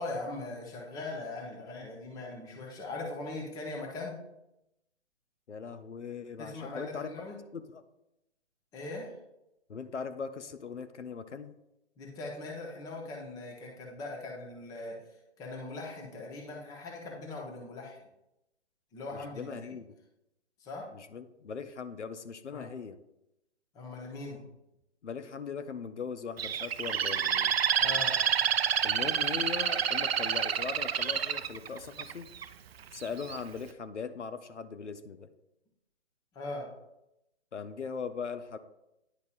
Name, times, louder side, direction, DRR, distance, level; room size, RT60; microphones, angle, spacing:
voice 1, 0.0-4.2 6.4-7.4 8.7-9.1 12.0-15.0 15.4-18.0 18.9-19.6 20.6-20.9 22.5-22.7 23.7-24.4 27.8-28.2 36.3-36.7, left 2 dB, 10° left, 0 dB, 0.8 m, -40 dB
voice 2, 5.5-7.1 7.5-7.8 9.7-11.5 19.1-19.8 20.9-23.0 25.0-27.5 28.8-32.3 32.9-35.3 37.5-38.6, left 6 dB, 80° left, 12 dB, 0.7 m, -39 dB
Bird, 26.4-32.4 33.0-33.4, right 8 dB, 60° right, 0.5 m, -28 dB
10.0 x 5.3 x 2.4 m, 0.88 s
figure-of-eight pair, 135°, 35 cm